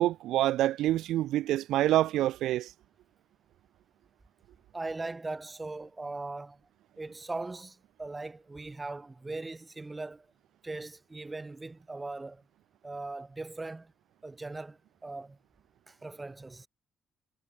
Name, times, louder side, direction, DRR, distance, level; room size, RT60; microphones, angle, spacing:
voice 1, 0.0-2.7, right 14 dB, 85° right, 0.7 m, -26 dB
voice 2, 4.7-6.6 7.0-10.3 10.6-12.4 12.8-13.9 14.2-15.4 15.9-16.7, right 3 dB, 20° right, 3.8 m, -39 dB
cardioid pair, 90°, 0 cm